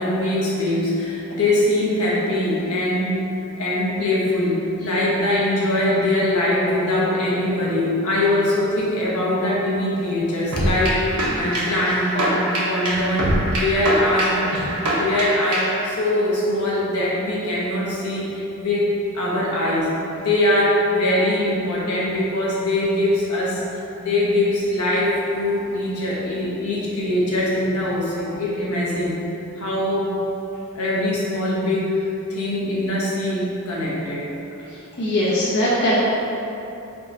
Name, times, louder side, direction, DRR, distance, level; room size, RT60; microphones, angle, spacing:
voice 1, 0.0-3.2 3.6-14.4 14.9-23.6 24.0-29.2 29.6-30.1 30.7-34.3, left 1 dB, 80° left, -6 dB, 1.0 m, -22 dB
sound 1, 10.5-15.8, right 1 dB, 85° right, 1.0 m, -23 dB
voice 2, 34.7-36.0, equal, 50° left, -7 dB, 0.5 m, -21 dB
3.7 x 2.6 x 4.7 m, 2.9 s
head